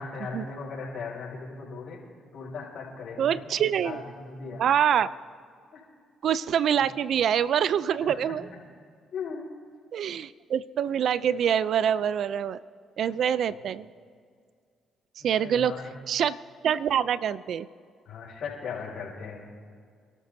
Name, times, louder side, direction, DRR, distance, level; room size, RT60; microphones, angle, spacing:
voice 1, 0.0-2.0 2.3-4.7 5.7-5.8 6.8-6.9 8.0-8.4 9.1-9.5 15.2-15.9 18.0-19.5, left 5 dB, 65° left, -5 dB, 4.8 m, -38 dB
voice 2, 3.2-4.0 4.6-5.1 6.2-8.5 9.9-12.6 13.0-13.9 15.2-15.7 16.1-16.3 16.6-17.7, right 9 dB, 65° right, 17 dB, 0.4 m, -25 dB
28.0 x 13.0 x 2.7 m, 2.1 s
supercardioid pair, 65°, 0 cm